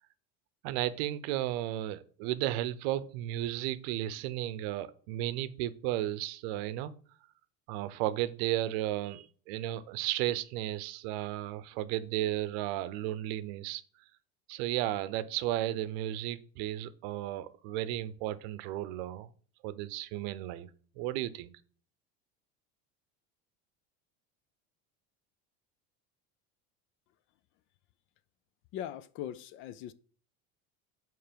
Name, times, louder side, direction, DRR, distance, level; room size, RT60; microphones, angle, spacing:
voice 1, 0.6-6.9 7.7-13.8 14.5-19.3 19.6-20.7 21.0-21.5, right 14 dB, 75° right, 0.7 m, -34 dB
voice 2, 28.7-29.9, left 11 dB, 40° left, 0.4 m, -40 dB
8.9 x 3.3 x 5.1 m
cardioid pair, 165°, 31 cm